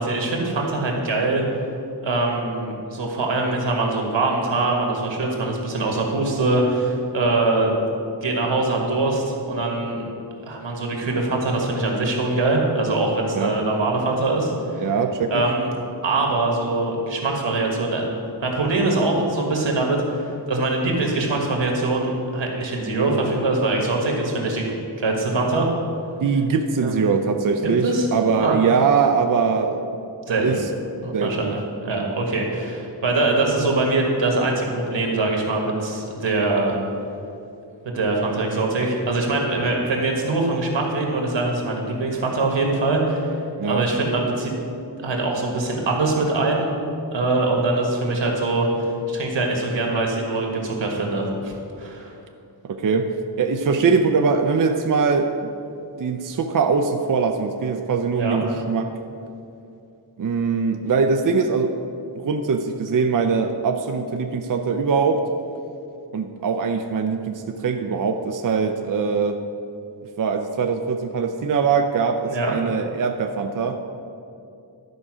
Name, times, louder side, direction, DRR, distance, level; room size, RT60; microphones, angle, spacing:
voice 1, 0.0-1.4 2.0-7.7 8.2-10.0 10.4-14.8 15.3-15.7 16.0-18.0 18.4-25.7 26.8-26.9 27.8-28.1 28.4-28.6 30.3-30.6 31.0-36.8 37.8-43.4 43.7-44.5 45.0-46.7 47.1-52.1 58.1-58.4 72.3-72.5, right 2 dB, 90° right, 0 dB, 1.7 m, -23 dB
voice 2, 14.8-15.4 26.2-29.8 30.4-30.6 31.1-31.6 43.6-43.9 52.6-53.1 53.4-55.5 56.0-58.9 60.2-61.7 62.2-65.2 66.1-69.4 70.2-73.8, right 5 dB, 50° right, 6 dB, 0.5 m, -22 dB
11.5 x 4.9 x 6.2 m, 2.6 s
wide cardioid pair, 125°, 43 cm